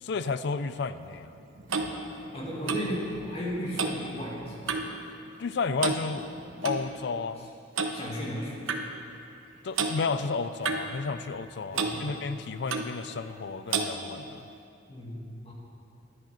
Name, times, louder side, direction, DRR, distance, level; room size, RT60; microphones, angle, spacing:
voice 1, 0.0-1.3 5.4-6.3 6.6-7.5 9.6-14.5, left 4 dB, 55° left, 13 dB, 0.4 m, -32 dB
Clock, 1.1-5.0 5.3-5.5 5.8-6.8 7.8-8.0 8.7-8.8 9.7-10.0 10.6-11.5 11.7-12.0 12.7-12.9 13.7-13.9, right 4 dB, 80° right, 0.8 m, -31 dB
voice 2, 2.3-4.5 7.9-9.0 11.7-12.1 14.9-15.2 15.4-15.5, equal, 30° left, -4 dB, 2.0 m, -35 dB
11.5 x 9.0 x 5.8 m, 2.6 s
head